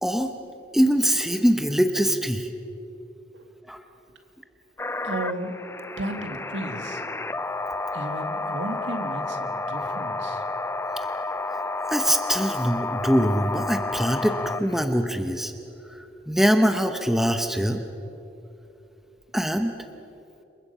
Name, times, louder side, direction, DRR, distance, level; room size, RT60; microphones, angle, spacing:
voice 1, 0.0-0.3 0.7-2.5 3.7-3.8 11.9-15.5 15.9-17.8 19.3-19.7, equal, ahead, 6 dB, 0.9 m, -23 dB
sound 1, 4.8-14.9, left 2 dB, 15° left, 0.5 m, -31 dB
voice 2, 5.0-5.5 6.0-7.0 7.9-10.4, right 1 dB, 90° right, 5 dB, 2.2 m, -34 dB
28.0 x 23.5 x 5.6 m, 2.9 s
head